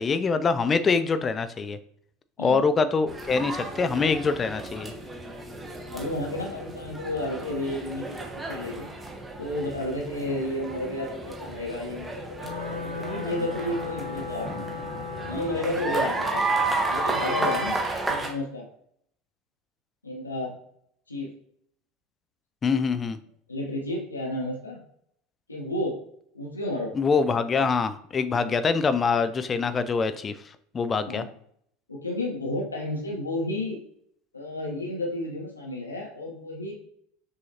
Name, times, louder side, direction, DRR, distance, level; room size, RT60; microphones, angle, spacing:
voice 1, 0.0-1.8 2.4-4.9 22.6-23.2 27.0-30.3 30.7-31.2, left 5 dB, 25° left, 12 dB, 0.4 m, -24 dB
sound 1, 3.1-18.3, right 2 dB, 10° right, 1.0 m, -32 dB
voice 2, 5.9-8.9 9.4-14.8 15.3-17.8 18.1-18.7 20.0-20.5 21.1-21.3 23.5-24.8 25.5-26.0 26.3-26.9 28.4-28.5 31.1-31.3 31.9-33.8 34.3-36.7, left 1 dB, 85° left, -2 dB, 0.9 m, -32 dB
Wind instrument woodwind instrument, 9.3-17.5, left 7 dB, 55° right, 0.9 m, -52 dB
Wind instrument woodwind instrument 2, 12.4-15.8, left 5 dB, 90° right, 0.8 m, -36 dB
6.1 x 2.7 x 2.8 m, 0.67 s
figure-of-eight pair, 75°, 0 cm